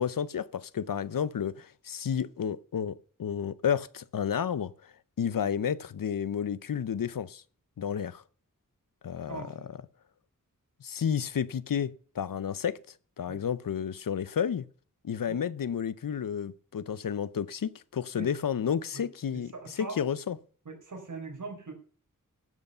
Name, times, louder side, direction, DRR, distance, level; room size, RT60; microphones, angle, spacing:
voice 1, 0.0-7.4 7.8-8.2 9.0-9.8 10.8-12.8 13.2-14.7 15.0-20.4, left 8 dB, 75° left, 0.7 m, -31 dB
voice 2, 9.3-9.7 13.3-13.4 15.3-15.4 18.2-18.3 18.9-19.0 19.5-20.0 20.7-21.7, right 3 dB, 65° right, 4.4 m, -40 dB
12.5 x 8.1 x 5.5 m
wide cardioid pair, 90°, 33 cm